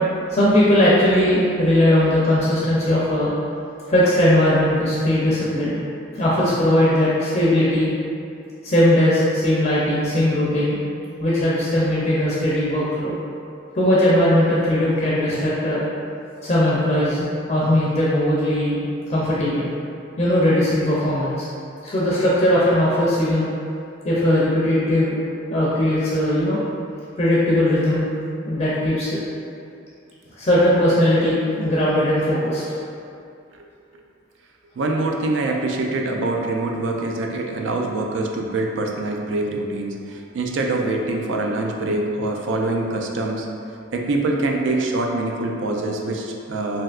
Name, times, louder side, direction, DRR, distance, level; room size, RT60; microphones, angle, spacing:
voice 1, 0.3-3.3 3.9-5.8 6.1-7.9 8.6-10.8 11.2-13.1 13.7-15.8 16.4-18.8 19.1-19.7 20.2-21.5 21.8-23.4 24.0-25.2 25.5-26.6 27.2-28.1 28.5-29.2 30.4-32.6, left 1 dB, 35° left, -8 dB, 0.4 m, -19 dB
voice 2, 34.8-43.5 43.9-46.8, right 2 dB, 80° right, 1 dB, 0.4 m, -24 dB
3.3 x 2.7 x 2.4 m, 2.5 s
head